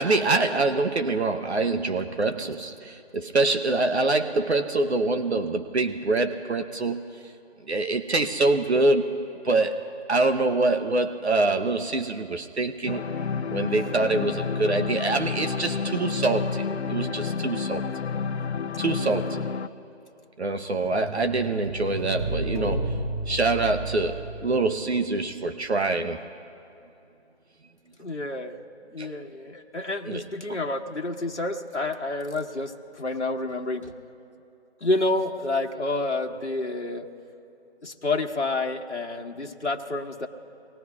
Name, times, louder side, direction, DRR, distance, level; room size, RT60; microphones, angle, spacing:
voice 1, 0.0-7.1 7.7-13.0 13.5-17.8 18.8-19.5 20.4-23.0 23.3-26.2 29.0-29.1 30.1-30.2, right 3 dB, 70° right, 8 dB, 0.9 m, -25 dB
sound 1, 12.9-19.7, left 5 dB, 70° left, 0.6 m, -30 dB
sound 2, 20.8-25.3 25.5-25.6, right 1 dB, 5° right, 1.8 m, -32 dB
voice 2, 28.0-33.9 34.8-37.1 37.8-40.3, left 2 dB, 85° left, 1 dB, 1.4 m, -29 dB
25.0 x 19.0 x 2.4 m, 2.8 s
figure-of-eight pair, 170°, 34 cm